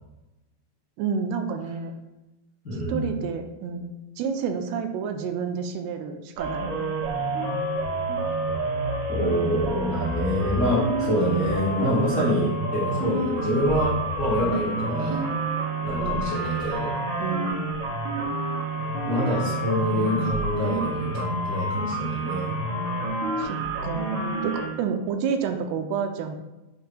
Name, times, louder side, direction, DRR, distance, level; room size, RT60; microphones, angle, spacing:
voice 1, 1.0-1.9 2.9-3.9 4.2-6.7 16.0-16.3 17.2-17.7 23.4-26.4, right 6 dB, 85° right, 6 dB, 2.6 m, -29 dB
voice 2, 2.6-3.1 9.1-15.2 15.8-16.9 19.1-22.5, equal, 75° left, -9 dB, 1.0 m, -26 dB
sound 1, 6.4-24.7, right 2 dB, 65° right, 3.2 m, -28 dB
8.0 x 2.7 x 4.9 m, 1.0 s
omnidirectional pair, 4.8 m